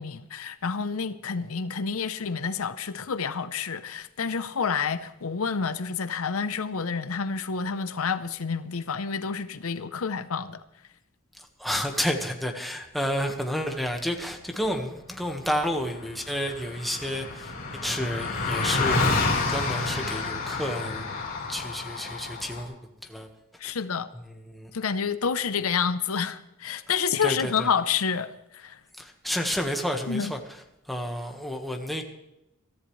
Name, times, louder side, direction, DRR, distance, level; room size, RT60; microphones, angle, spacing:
voice 1, 0.0-10.6 23.6-24.1 24.7-28.8 30.1-30.3, left 6 dB, 85° left, 13 dB, 0.7 m, -29 dB
voice 2, 11.3-21.1 21.5-22.8 23.0-23.3 23.6-23.7 24.1-24.7 27.2-27.7 29.0-32.0, equal, ahead, 3 dB, 1.4 m, -31 dB
Car passing by, 15.5-15.6 15.8-22.6, left 3 dB, 45° left, 4.2 m, -29 dB
22.5 x 14.0 x 3.2 m, 0.89 s
head